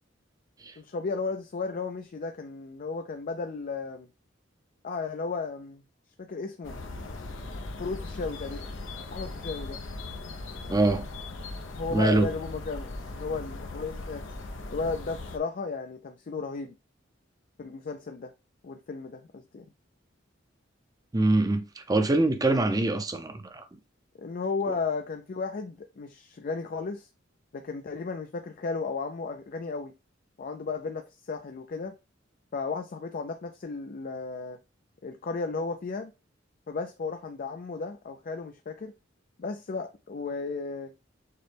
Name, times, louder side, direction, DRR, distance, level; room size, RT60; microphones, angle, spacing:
voice 1, 0.8-4.1 4.8-5.8 6.2-6.8 7.8-8.7 9.1-9.8 11.7-14.3 14.7-16.7 17.6-18.3 18.6-19.7 24.2-27.1 27.5-29.9 30.4-31.9 32.5-34.6 35.0-36.1 36.7-38.9 39.4-40.9, left 4 dB, 45° left, 0.4 m, -34 dB
sound 1, 6.6-15.4, left 2 dB, 85° left, 0.7 m, -39 dB
voice 2, 10.7-11.1 11.9-12.3 21.1-23.6, right 2 dB, 20° right, 0.5 m, -24 dB
6.6 x 2.2 x 3.3 m
head